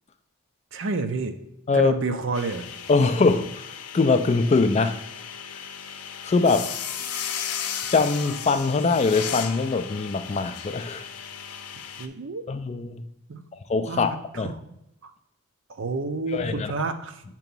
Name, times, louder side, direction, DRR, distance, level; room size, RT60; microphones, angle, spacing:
voice 1, 0.7-1.4 1.7-2.7 12.0-12.4 13.3-13.4 13.9-14.5 15.0-15.1 15.7-17.2, right 3 dB, 55° right, 8 dB, 0.5 m, -29 dB
sound 1, 2.3-12.1, left 8 dB, 90° left, 0.6 m, -35 dB
voice 2, 2.9-5.0 5.5-5.6 6.2-6.7 7.9-11.1 12.5-13.0 13.5-14.5 16.3-16.7, left 4 dB, 30° left, 9 dB, 0.3 m, -23 dB
6.7 x 3.0 x 5.3 m, 0.83 s
head